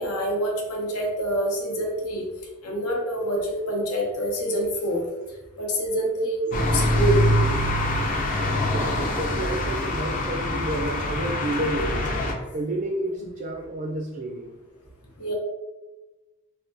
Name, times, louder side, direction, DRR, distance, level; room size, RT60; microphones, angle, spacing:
voice 1, 0.0-2.2 2.6-5.1 5.6-7.2 15.2-15.3, right 1 dB, 90° left, 0 dB, 0.8 m, -26 dB
sound 1, 6.5-12.3, left 1 dB, 40° left, 0.5 m, -24 dB
voice 2, 8.7-12.1 12.5-14.6, right 1 dB, 40° right, 0 dB, 0.3 m, -30 dB
3.4 x 2.2 x 2.5 m, 1.1 s
head